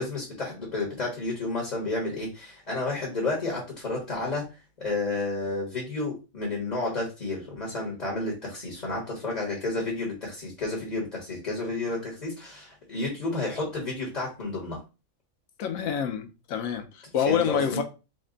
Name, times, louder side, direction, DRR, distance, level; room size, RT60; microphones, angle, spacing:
voice 1, 0.0-4.5 4.8-14.8 17.3-17.8, left 2 dB, 35° left, 1.2 m, -31 dB
voice 2, 15.6-17.8, left 7 dB, 85° left, 1.1 m, -27 dB
4.1 x 2.2 x 3.8 m
omnidirectional pair, 1.4 m